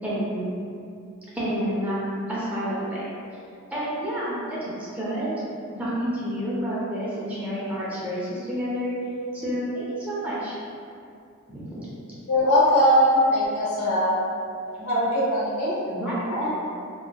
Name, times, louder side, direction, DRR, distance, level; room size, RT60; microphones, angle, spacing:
voice 1, 0.0-0.5 1.3-3.0 3.7-4.6 4.9-5.3 5.7-8.9 9.3-10.5 11.5-11.8 15.9-16.5, equal, 5° right, -9 dB, 0.4 m, -29 dB
voice 2, 12.3-14.2 14.8-15.8 16.3-16.5, equal, 80° left, -7 dB, 0.8 m, -21 dB
2.7 x 2.2 x 2.2 m, 2.4 s
head